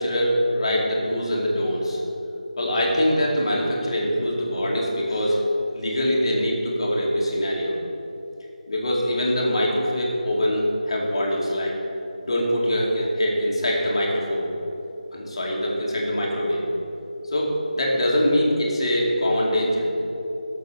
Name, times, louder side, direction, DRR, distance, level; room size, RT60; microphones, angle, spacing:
voice 1, 0.0-2.0 2.6-5.4 5.7-7.7 8.7-11.7 12.2-14.4 15.1-16.6 17.3-19.8, equal, 40° left, -3 dB, 2.5 m, -23 dB
13.0 x 6.9 x 6.9 m, 2.9 s
figure-of-eight pair, 160°, 4 cm